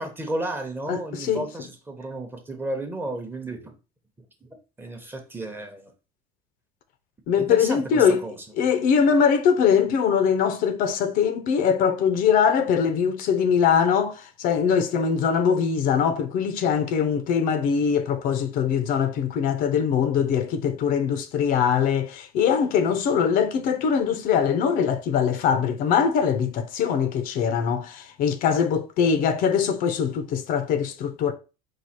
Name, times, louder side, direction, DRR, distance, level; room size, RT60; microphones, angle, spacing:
voice 1, 0.0-3.8 4.4-4.5 4.8-5.9 7.4-8.8, right 1 dB, 10° right, 0.8 m, -33 dB
voice 2, 0.9-1.4 7.3-8.2 8.6-31.3, left 7 dB, 55° left, 0.6 m, -22 dB
4.7 x 2.3 x 4.2 m
cardioid pair, 140°, 17 cm